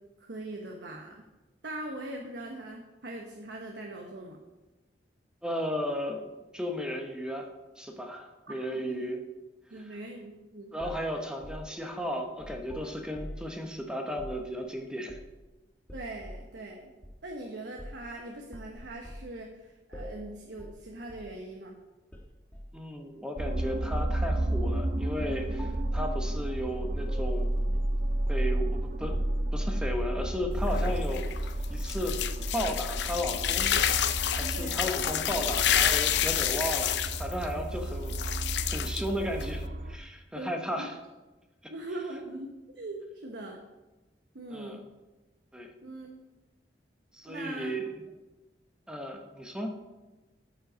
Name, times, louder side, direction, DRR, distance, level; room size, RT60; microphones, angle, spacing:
voice 1, 0.2-1.2 1.6-4.4 8.5-9.0 9.7-10.7 15.9-16.9 17.2-21.8 34.4-34.8 40.3-40.9 41.7-43.6 44.3-44.9 45.8-46.1 47.3-47.8, right 1 dB, 75° right, 1 dB, 1.1 m, -41 dB
voice 2, 5.4-7.5 7.8-9.2 10.7-15.2 22.7-27.8 28.3-29.2 29.5-32.2 32.5-33.7 34.3-38.1 38.7-39.6 39.9-40.9 44.5-44.8 45.5-45.7 47.1-47.9 48.9-49.7, equal, 5° right, 3 dB, 1.1 m, -34 dB
sound 1, 10.8-13.6 14.1-14.4 15.1-15.5 15.9-16.5 17.0-17.2 17.8-18.1 18.5-19.3 19.9-20.3 20.6-20.8 21.1-21.3 22.1-22.8 23.4-24.1 24.5-24.8 25.1-25.3 25.6-26.0 26.4-26.7 27.1-28.7, equal, 10° left, 1.3 m, -45 dB
sound 2, 23.4-40.0, right 1 dB, 50° right, 0.7 m, -32 dB
sound 3, 30.5-39.7, left 10 dB, 70° left, 0.5 m, -29 dB
13.0 x 5.6 x 5.1 m, 1.1 s
head